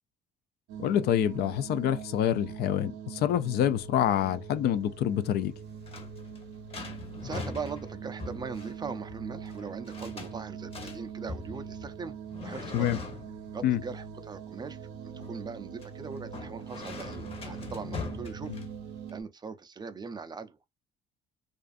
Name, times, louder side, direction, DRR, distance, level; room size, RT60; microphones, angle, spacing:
sound 1, 0.7-19.2, right 7 dB, 90° right, 0.5 m, -43 dB
voice 1, 0.8-5.5 12.7-13.0 13.6-13.8 18.5-18.6, left 10 dB, 70° left, 0.4 m, -27 dB
sound 2, 5.4-19.1, left 4 dB, 35° left, 0.9 m, -43 dB
voice 2, 7.2-12.2 12.4-12.9 13.5-18.5 19.1-20.6, right 5 dB, 25° right, 0.4 m, -40 dB
2.4 x 2.4 x 2.4 m
cardioid pair, 110°, 17 cm